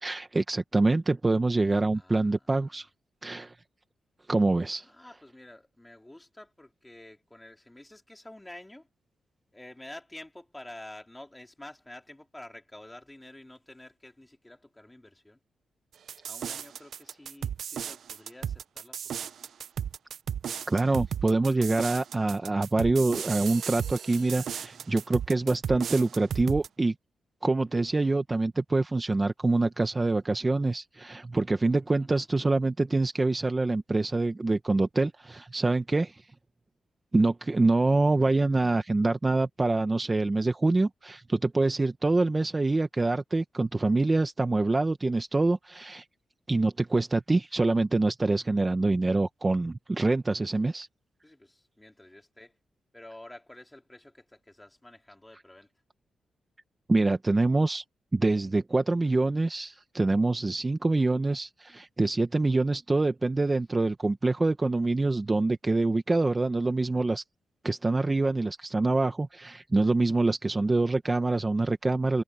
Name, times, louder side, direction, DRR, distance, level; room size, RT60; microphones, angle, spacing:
voice 1, 0.0-2.9 3.2-3.5 4.3-4.9 20.7-26.9 27.4-36.2 37.1-46.0 46.5-50.9 56.9-57.8 58.1-67.2 67.6-72.2, right 2 dB, 20° right, 1.0 m, -25 dB
voice 2, 1.9-2.8 4.7-8.9 9.5-15.4 16.2-19.4 32.0-32.3 51.2-52.6 52.9-55.7, left 1 dB, 10° left, 3.7 m, -49 dB
sound 1, 16.1-26.7, right 8 dB, 70° right, 0.4 m, -35 dB
wide cardioid pair, 125°, 0 cm